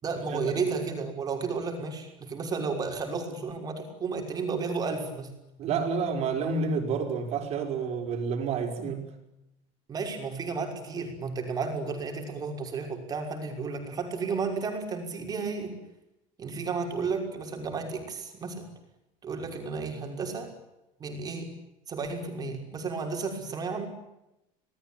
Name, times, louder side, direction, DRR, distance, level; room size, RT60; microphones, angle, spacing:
voice 1, 0.0-5.3 9.9-15.8 16.4-18.7 19.2-20.5 21.0-21.5 21.9-23.9, right 4 dB, 20° right, 4 dB, 5.9 m, -33 dB
voice 2, 5.6-9.0, right 5 dB, 40° right, 4 dB, 5.7 m, -29 dB
27.5 x 20.0 x 9.1 m, 0.90 s
cardioid pair, 165°, 17 cm